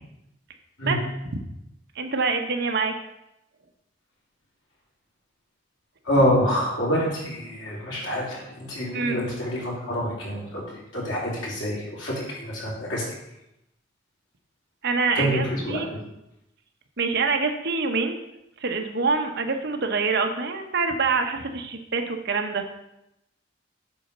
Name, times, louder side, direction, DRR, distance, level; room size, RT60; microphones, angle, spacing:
voice 1, 2.0-2.9 8.9-9.2 14.8-15.9 17.0-18.2 18.6-22.6, right 4 dB, 60° right, 5 dB, 1.0 m, -25 dB
voice 2, 6.0-13.0 15.1-15.8, equal, 85° left, -5 dB, 3.5 m, -26 dB
8.5 x 4.0 x 6.6 m, 0.85 s
head